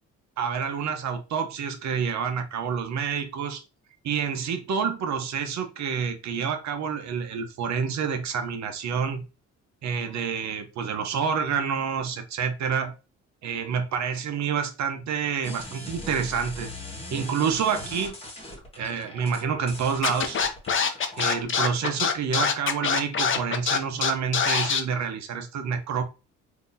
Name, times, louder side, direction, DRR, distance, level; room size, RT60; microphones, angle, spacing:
voice 1, 0.4-3.6 4.0-9.2 9.8-12.9 13.4-16.7 17.1-18.1 18.8-20.4 21.2-26.0, right 6 dB, 65° right, 0.9 m, -28 dB
sound 1, 15.4-21.4, left 1 dB, 20° left, 1.5 m, -40 dB
Scratching (performance technique), 20.0-24.8, left 6 dB, 40° left, 0.7 m, -24 dB
3.6 x 2.8 x 2.7 m
cardioid pair, 80°, 30 cm